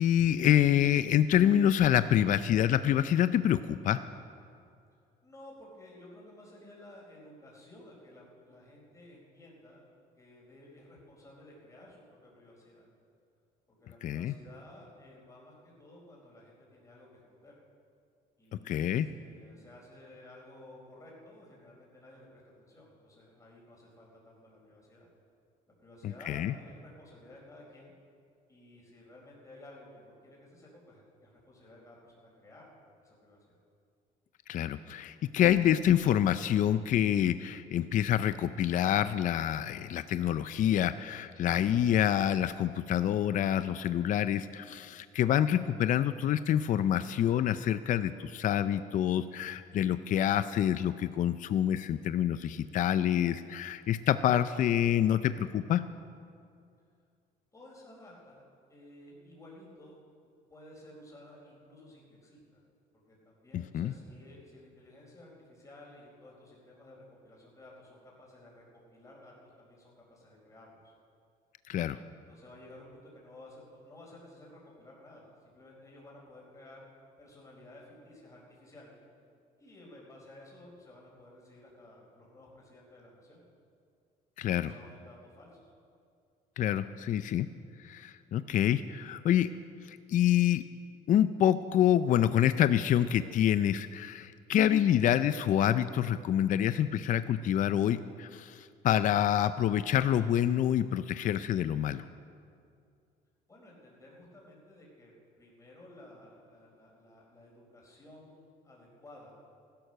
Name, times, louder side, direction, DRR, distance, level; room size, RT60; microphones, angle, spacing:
voice 1, 0.0-4.0 14.0-14.3 18.7-19.1 26.0-26.5 34.5-55.8 63.5-63.9 71.7-72.0 84.4-84.7 86.6-87.5 87.8-89.5 89.8-90.6 91.1-102.0, left 10 dB, 50° left, 13 dB, 0.5 m, -27 dB
voice 2, 5.2-9.8 10.2-12.9 13.7-17.5 18.4-25.1 25.8-27.9 28.5-32.7 33.0-33.6 57.5-58.4 58.7-60.0 60.2-62.6 63.1-68.6 68.9-70.9 72.3-76.8 77.2-79.0 79.6-83.5 84.6-85.7 88.2-88.4 103.5-105.1 105.4-109.3, left 1 dB, 20° left, -3 dB, 4.4 m, -54 dB
15.5 x 11.5 x 6.5 m, 2.4 s
cardioid pair, 110°, 17 cm